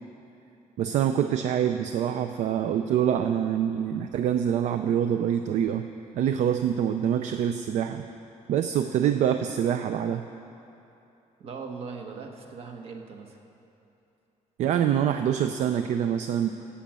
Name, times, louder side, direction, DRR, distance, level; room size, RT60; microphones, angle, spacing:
voice 1, 0.8-5.9 6.1-8.0 8.5-10.2 14.6-16.5, right 9 dB, 65° right, 8 dB, 0.4 m, -25 dB
voice 2, 11.4-13.4, right 5 dB, 50° right, 3 dB, 1.2 m, -39 dB
12.0 x 8.6 x 7.5 m, 2.9 s
cardioid pair, 180°, 13 cm